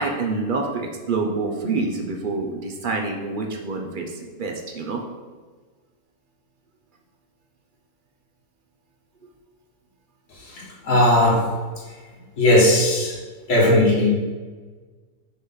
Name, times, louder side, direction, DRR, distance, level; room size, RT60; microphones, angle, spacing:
voice 1, 0.0-5.0, right 3 dB, 60° right, 2 dB, 0.5 m, -27 dB
voice 2, 10.3-11.4 12.4-13.2 13.5-14.1, left 1 dB, 60° left, -4 dB, 2.2 m, -18 dB
6.5 x 4.1 x 5.5 m, 1.4 s
omnidirectional pair, 1.9 m